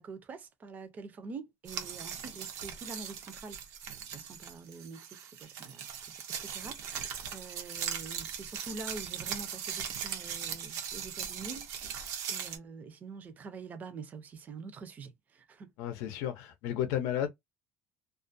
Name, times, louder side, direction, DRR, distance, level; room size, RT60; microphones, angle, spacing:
voice 1, 0.0-3.6 4.1-11.7 12.3-15.7, right 4 dB, 30° right, 0.5 m, -46 dB
sound 1, 1.6-12.6, right 8 dB, 80° right, 0.6 m, -39 dB
voice 2, 15.8-17.3, left 10 dB, 85° left, 0.5 m, -32 dB
2.3 x 2.1 x 2.5 m
cardioid pair, 155°, 6 cm